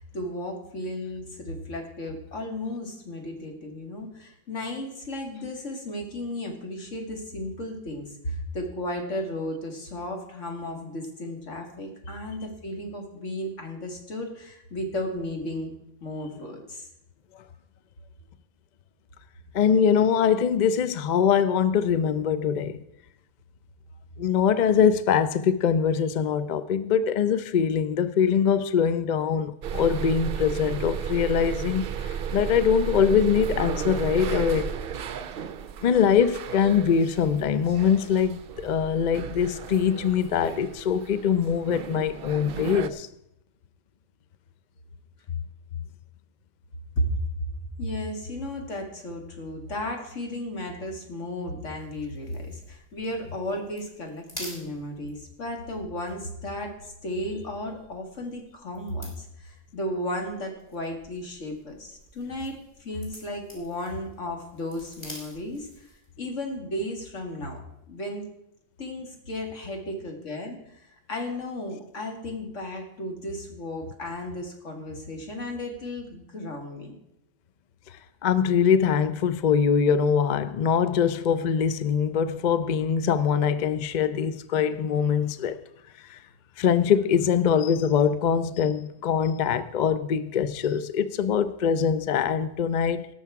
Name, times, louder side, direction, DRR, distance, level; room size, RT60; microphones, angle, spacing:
voice 1, 0.0-15.7 16.0-16.9 47.0-47.1 47.8-65.9 66.2-67.6 67.9-68.3 68.8-70.8 71.1-76.9, left 1 dB, 70° left, 2.3 m, -34 dB
voice 2, 19.5-22.8 24.2-34.7 35.8-43.1 78.2-85.6 86.1-86.2 86.6-93.1, left 7 dB, 50° left, 0.5 m, -23 dB
sound 1, 29.6-42.9, right 8 dB, 55° right, 0.7 m, -34 dB
sound 2, 51.8-66.1, equal, 20° left, 3.4 m, -49 dB
18.0 x 6.3 x 4.7 m
omnidirectional pair, 1.3 m